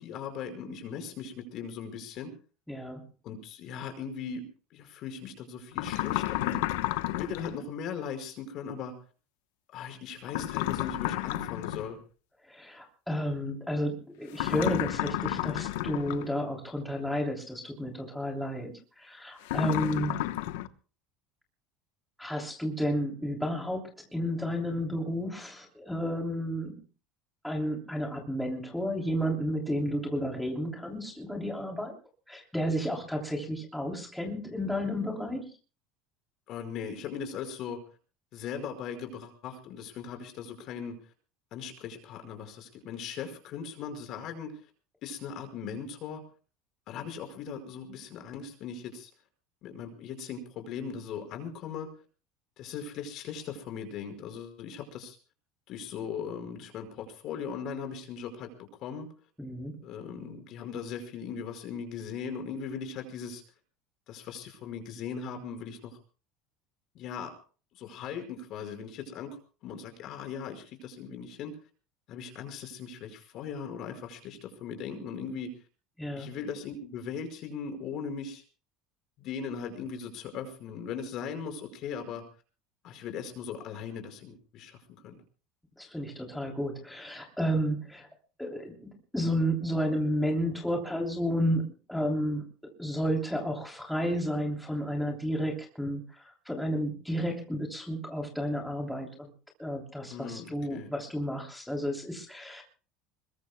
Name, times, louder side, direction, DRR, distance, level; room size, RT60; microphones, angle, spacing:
voice 1, 0.0-2.3 3.2-4.4 4.7-6.6 7.1-8.9 9.7-12.0 36.5-37.8 38.3-41.0 41.5-44.5 45.0-46.2 46.9-49.1 49.6-51.9 52.6-55.2 55.7-59.1 59.8-63.4 64.1-66.0 67.0-67.3 67.7-71.5 72.1-75.5 76.1-78.4 79.2-82.2 82.8-85.2 100.1-100.9, left 6 dB, 50° left, 6 dB, 5.3 m, -39 dB
voice 2, 2.7-3.0 12.4-20.2 22.2-26.7 27.4-31.9 32.3-35.5 59.4-59.7 76.0-76.3 85.8-88.1 88.4-91.6 91.9-92.4 92.8-99.3 99.6-102.6, equal, 5° left, 0 dB, 3.1 m, -32 dB
sound 1, 5.7-7.6 10.3-11.9 14.3-16.3 19.4-20.7, left 15 dB, 85° left, 1.0 m, -31 dB
26.0 x 22.0 x 2.2 m, 0.38 s
cardioid pair, 140°, 0 cm